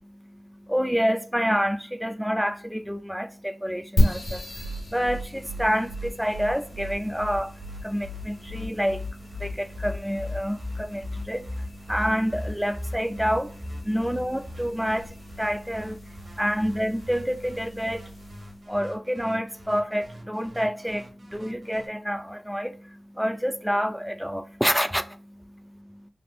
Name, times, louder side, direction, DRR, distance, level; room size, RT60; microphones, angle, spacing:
voice 1, 0.1-26.0, equal, ahead, 0.3 m, -28 dB
sound 1, 4.0-18.7, equal, 75° left, 1.5 m, -34 dB
sound 2, 4.3-21.9, left 1 dB, 60° right, 1.0 m, -38 dB
3.3 x 2.5 x 2.5 m
wide cardioid pair, 85°, 0 cm